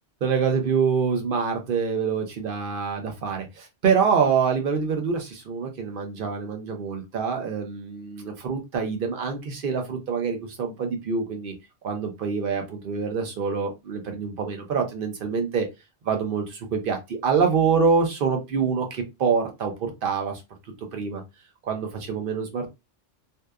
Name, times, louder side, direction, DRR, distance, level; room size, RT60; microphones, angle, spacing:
voice 1, 0.2-11.5 11.8-15.7 16.0-20.4 20.9-21.2 21.6-22.7, right 5 dB, 55° right, 4 dB, 0.7 m, -25 dB
2.7 x 2.2 x 2.2 m, 0.24 s
omnidirectional pair, 1.2 m